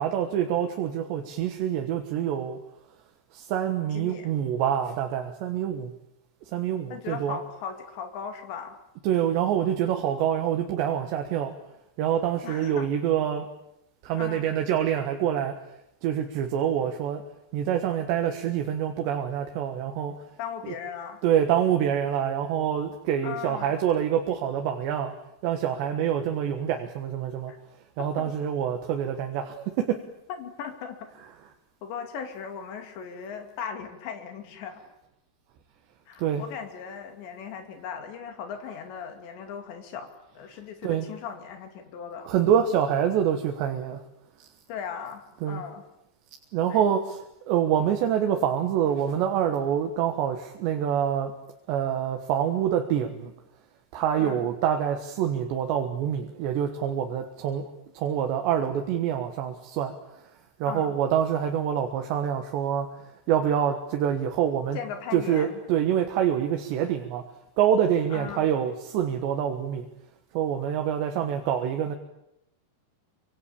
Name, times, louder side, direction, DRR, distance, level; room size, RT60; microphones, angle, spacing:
voice 1, 0.0-2.6 3.3-5.9 6.5-7.4 9.0-11.6 12.0-13.5 14.0-15.6 16.0-17.2 17.5-20.2 20.6-20.7 21.2-25.1 25.4-27.5 28.0-30.0 36.2-36.4 40.8-41.1 42.3-44.0 45.4-45.6 46.5-47.2 47.5-51.4 51.7-53.3 53.9-57.7 58.0-59.9 60.6-62.9 63.3-64.8 65.1-67.2 67.6-69.9 70.3-72.0, right 9 dB, 85° right, 5 dB, 3.7 m, -26 dB
voice 2, 3.9-4.3 6.9-8.8 12.4-12.9 14.2-14.5 20.4-21.2 23.2-23.8 27.5-27.6 28.2-28.3 30.4-31.0 31.8-34.8 36.1-40.1 40.3-42.3 44.7-45.2 45.5-45.8 46.7-46.8 54.2-54.4 60.7-60.9 64.7-65.6 68.1-68.5, left 7 dB, 85° left, 6 dB, 4.8 m, -38 dB
27.5 x 24.5 x 8.6 m, 0.81 s
omnidirectional pair, 4.9 m